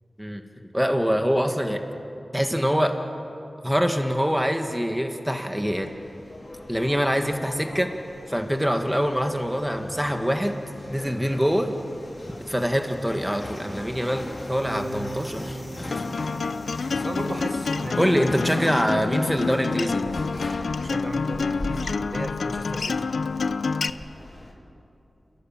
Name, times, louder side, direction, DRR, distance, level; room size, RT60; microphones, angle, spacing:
voice 1, 0.7-1.8 2.3-3.0 3.6-5.9 6.7-7.9 8.3-10.6 10.9-11.7 12.5-16.0 17.9-20.1, equal, 5° right, 5 dB, 1.9 m, -24 dB
sound 1, 5.6-24.5, left 1 dB, 45° left, 3.9 m, -40 dB
sound 2, 14.6-17.2, right 1 dB, 30° right, 7.3 m, -38 dB
Acoustic guitar, 15.9-23.9, left 4 dB, 90° left, 0.5 m, -28 dB
voice 2, 16.9-18.2 18.5-18.6 20.8-23.1, right 1 dB, 45° right, 4 dB, 1.8 m, -35 dB
30.0 x 16.5 x 7.4 m, 2.9 s
wide cardioid pair, 50°, 0 cm